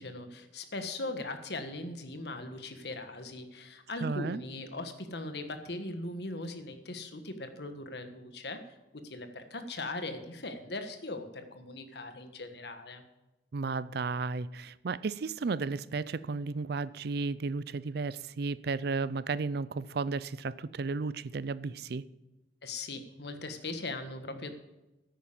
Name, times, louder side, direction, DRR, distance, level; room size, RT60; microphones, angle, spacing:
voice 1, 0.0-8.8 9.0-13.0 22.6-24.5, left 2 dB, 65° left, 1.5 m, -39 dB
voice 2, 4.0-4.4 13.5-22.0, right 4 dB, 60° right, 0.5 m, -33 dB
10.5 x 9.0 x 7.3 m
head